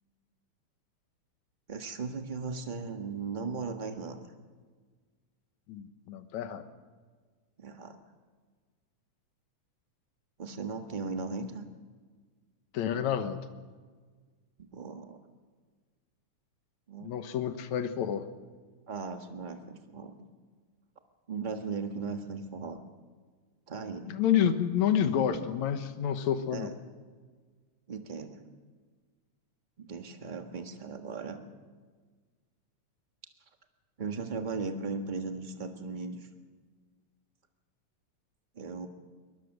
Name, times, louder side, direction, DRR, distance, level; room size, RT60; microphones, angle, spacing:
voice 1, 1.7-4.2 7.6-8.0 10.4-11.6 14.7-15.2 16.9-17.1 18.9-20.1 21.3-22.8 23.7-24.1 26.5-26.7 27.9-28.4 29.8-31.4 34.0-36.3 38.5-38.9, right 4 dB, 30° right, 6 dB, 0.8 m, -37 dB
voice 2, 5.7-6.6 12.7-13.4 17.0-18.3 24.1-26.7, left 9 dB, 75° left, 10 dB, 2.5 m, -29 dB
23.0 x 20.0 x 6.5 m, 1.5 s
omnidirectional pair, 3.3 m